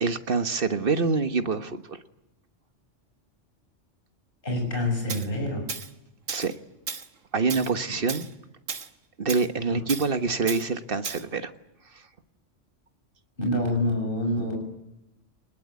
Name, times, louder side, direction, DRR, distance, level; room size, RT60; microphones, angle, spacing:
voice 1, 0.0-2.0 6.3-6.5 7.3-8.3 9.2-11.5, right 4 dB, 50° right, 10 dB, 1.5 m, -26 dB
voice 2, 4.4-5.7 9.7-9.8 13.4-14.6, left 1 dB, 45° left, 2 dB, 6.7 m, -26 dB
Tools, 5.1-5.3 5.7-5.9 6.3-6.5 6.9-7.1 7.5-7.7 8.1-8.3 8.7-8.9 9.3-9.5 9.9-10.1 10.5-10.6 11.0-11.2, right 6 dB, 80° right, 1.8 m, -34 dB
24.0 x 20.5 x 9.5 m, 0.90 s
omnidirectional pair, 1.3 m